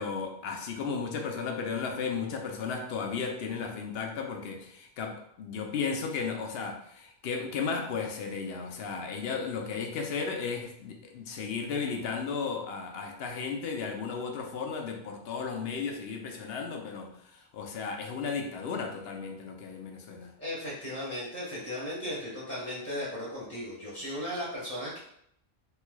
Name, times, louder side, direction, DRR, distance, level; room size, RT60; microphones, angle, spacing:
voice 1, 0.0-20.3, left 5 dB, 75° left, 2 dB, 0.8 m, -34 dB
voice 2, 20.4-25.0, left 1 dB, 10° left, -9 dB, 1.2 m, -36 dB
3.2 x 3.0 x 2.2 m, 0.71 s
omnidirectional pair, 1.0 m